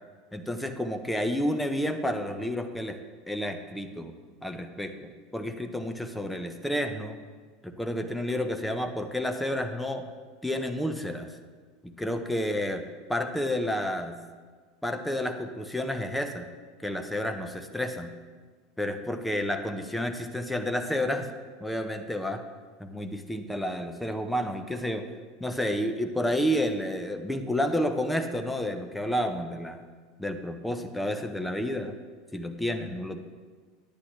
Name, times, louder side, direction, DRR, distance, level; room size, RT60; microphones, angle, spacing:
voice 1, 0.3-3.0 3.3-4.1 4.4-7.2 7.6-10.1 10.4-11.3 11.8-12.8 13.1-14.2 14.8-16.5 16.8-18.1 18.8-21.3 21.6-22.4 22.8-25.0 25.4-29.8 30.2-31.9 32.3-33.2, equal, 5° left, 7 dB, 0.8 m, -30 dB
10.0 x 9.6 x 3.3 m, 1.5 s
figure-of-eight pair, 80°, 0 cm